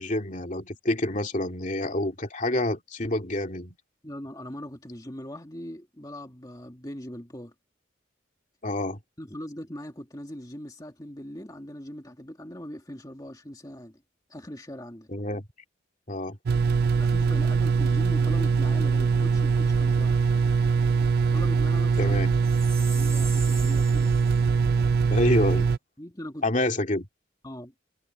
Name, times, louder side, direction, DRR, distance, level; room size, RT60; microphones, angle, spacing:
voice 1, 0.0-3.8 8.6-9.0 15.1-15.4 16.1-16.4 22.0-22.3 25.1-25.7 26.4-27.1, left 1 dB, 40° left, 2.8 m, -27 dB
voice 2, 4.0-7.5 9.2-14.0 14.3-15.1 17.0-20.2 21.3-22.1 22.8-24.1 26.0-26.4 27.4-27.7, equal, 20° left, 2.1 m, -40 dB
sound 1, 16.5-25.8, right 5 dB, 50° right, 0.3 m, -22 dB
Chime, 22.4-24.4, right 5 dB, 15° right, 5.8 m, -41 dB
head